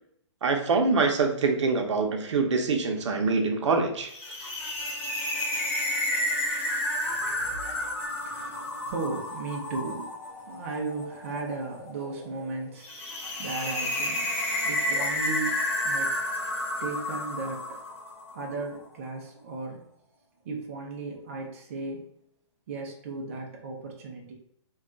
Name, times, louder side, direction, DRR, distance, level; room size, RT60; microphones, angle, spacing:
voice 1, 0.4-4.1, right 4 dB, 75° right, 3 dB, 0.6 m, -24 dB
sound 1, 4.1-18.4, left 1 dB, 25° left, 0.6 m, -31 dB
voice 2, 7.0-16.3 16.8-17.8 18.3-19.9 20.4-22.1 22.7-24.3, right 3 dB, 25° right, -1 dB, 0.4 m, -36 dB
2.3 x 2.2 x 3.7 m, 0.72 s
hypercardioid pair, 170°, 15 cm